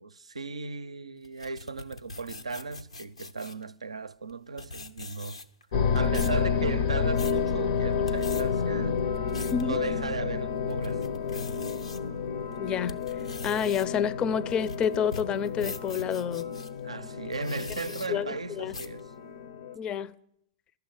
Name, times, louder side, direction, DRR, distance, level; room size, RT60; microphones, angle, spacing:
voice 1, 0.0-5.4 5.9-9.0 9.6-11.1 16.8-19.1, right 4 dB, 85° right, 0.4 m, -36 dB
sound 1, 1.2-3.6 4.3-4.4 4.6-5.6 6.0-6.4 6.9-7.4 7.9-8.4 9.0-9.6 10.1-10.2 10.7-12.0 12.5-16.7 17.3-18.1 18.7-19.0, left 2 dB, 90° left, 0.9 m, -41 dB
sound 2, 5.7-19.7, left 6 dB, 65° left, 0.7 m, -30 dB
voice 2, 12.6-13.0 13.4-16.5 18.1-18.7 19.8-20.1, left 8 dB, 30° left, 0.5 m, -29 dB
12.5 x 7.7 x 9.0 m
figure-of-eight pair, 105°, 3 cm